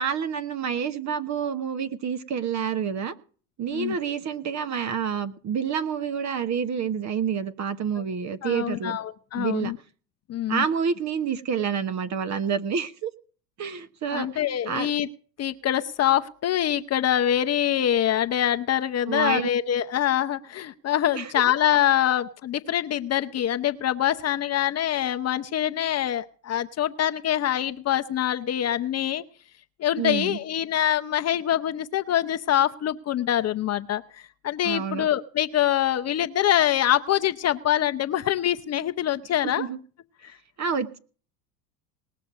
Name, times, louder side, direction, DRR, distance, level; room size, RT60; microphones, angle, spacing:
voice 1, 0.0-3.1 3.6-9.0 9.4-9.7 10.5-13.1 13.6-14.3 14.7-14.9 19.1-19.5 21.1-21.3 30.0-30.4 34.6-35.1 39.6-39.8 40.6-41.0, right 7 dB, 35° right, 12 dB, 1.2 m, -28 dB
voice 2, 8.4-9.8 10.3-10.6 14.1-15.1 15.4-29.2 29.8-39.7 40.2-40.3, left 11 dB, 30° left, 9 dB, 0.8 m, -24 dB
19.5 x 6.7 x 7.4 m, 0.42 s
hypercardioid pair, 100°, 49 cm